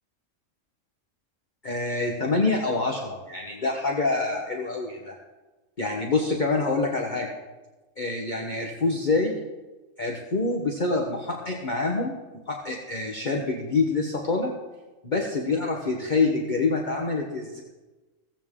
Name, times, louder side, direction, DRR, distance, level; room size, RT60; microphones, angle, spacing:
voice 1, 1.6-5.1 5.8-7.3 8.0-9.3 10.0-12.2 12.5-14.5 15.0-17.6, left 3 dB, 35° left, 0 dB, 1.4 m, -26 dB
16.5 x 14.5 x 3.7 m, 1.2 s
omnidirectional pair, 1.3 m